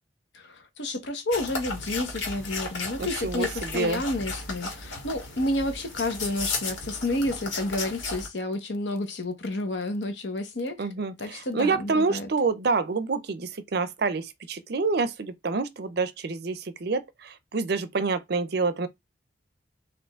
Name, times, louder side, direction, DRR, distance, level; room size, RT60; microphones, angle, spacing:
voice 1, 0.3-10.9 11.2-12.3, left 2 dB, 65° left, 1.1 m, -30 dB
sound 1, 1.3-8.3, left 3 dB, 85° left, 1.7 m, -34 dB
voice 2, 3.0-4.0 10.8-18.9, right 4 dB, 55° right, 0.6 m, -27 dB
5.0 x 2.6 x 3.6 m
head